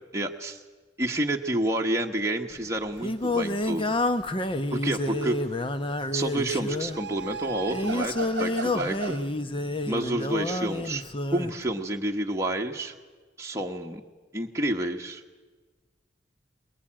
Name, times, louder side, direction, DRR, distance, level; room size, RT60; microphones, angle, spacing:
voice 1, 0.1-0.6 1.0-4.0 4.7-5.4 6.1-8.1 8.4-9.2 9.8-11.0 11.3-12.9 13.4-14.0 14.3-15.2, right 1 dB, 15° right, 0 dB, 1.2 m, -29 dB
Singing, 2.5-11.6, left 2 dB, 30° left, 0.9 m, -29 dB
sound 1, 4.7-5.7 6.7-9.3, right 4 dB, 65° right, 0.7 m, -36 dB
22.5 x 21.5 x 8.8 m, 1.3 s
head